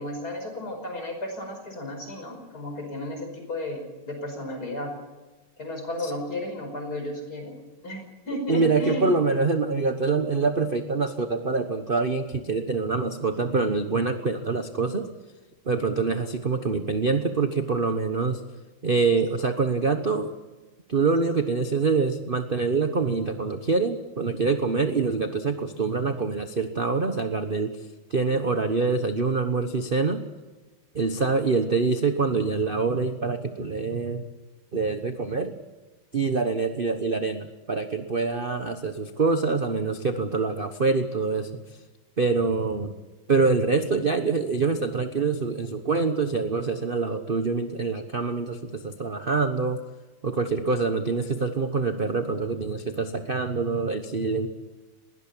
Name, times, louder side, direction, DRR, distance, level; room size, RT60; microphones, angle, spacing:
voice 1, 0.0-4.9 5.6-7.6 7.8-9.2, left 1 dB, 45° left, 4 dB, 5.6 m, -33 dB
voice 2, 8.5-15.0 15.7-18.4 18.8-20.3 20.9-27.7 28.1-30.2 30.9-34.2 34.7-35.5 36.1-41.5 42.2-42.9 43.3-49.8 50.2-54.5, right 4 dB, 35° right, 8 dB, 1.0 m, -25 dB
21.0 x 18.5 x 8.6 m, 1.2 s
omnidirectional pair, 2.4 m